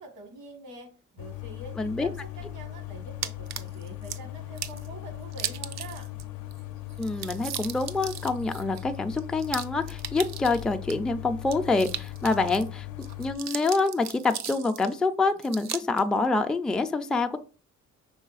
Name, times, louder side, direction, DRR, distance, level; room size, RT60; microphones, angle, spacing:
voice 1, 0.0-6.1, right 2 dB, 85° right, 4 dB, 1.4 m, -45 dB
sound 1, 1.2-13.4, left 14 dB, 80° left, 0.5 m, -39 dB
voice 2, 1.8-2.1 7.0-12.9 13.2-17.4, left 3 dB, 5° left, 6 dB, 0.3 m, -26 dB
sound 2, 3.2-4.2 4.6-4.9 5.3-6.2 6.5-6.6 6.9-10.9 11.4-12.7 13.0-14.9 15.4-16.0, right 10 dB, 60° right, 0.5 m, -37 dB
5.5 x 3.2 x 2.4 m, 0.36 s
cardioid pair, 90°, 30 cm